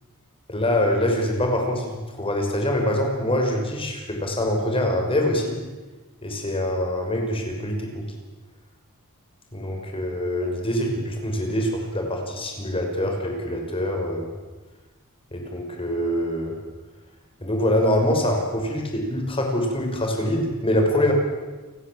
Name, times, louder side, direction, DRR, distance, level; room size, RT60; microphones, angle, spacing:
voice 1, 0.5-5.6 6.2-8.0 9.5-14.3 15.3-16.6 17.4-21.1, left 1 dB, 25° left, 2 dB, 5.8 m, -24 dB
30.0 x 17.0 x 8.8 m, 1.2 s
head